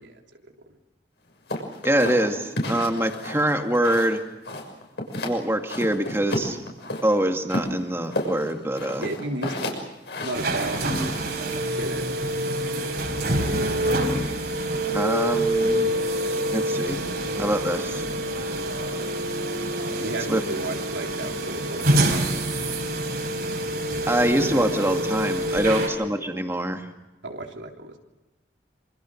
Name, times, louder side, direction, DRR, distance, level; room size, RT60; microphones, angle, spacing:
voice 1, 0.0-0.5 9.0-9.8 10.2-10.9 11.8-12.0 13.3-13.8 20.0-22.3 25.5-25.7 27.2-28.0, right 1 dB, 85° right, 2 dB, 3.5 m, -34 dB
sound 1, 1.5-4.2 4.5-5.4 5.7-7.1 7.5-11.3, left 1 dB, 65° left, 6.4 m, -31 dB
voice 2, 1.8-4.2 5.2-6.6 7.0-9.1 14.9-16.0 16.5-17.0 17.4-18.0 20.3-20.4 24.1-26.9, right 1 dB, 15° right, 4 dB, 2.2 m, -24 dB
sound 2, 10.3-25.9, right 1 dB, 55° right, 4.7 m, -26 dB
27.0 x 26.5 x 6.5 m, 1.0 s
head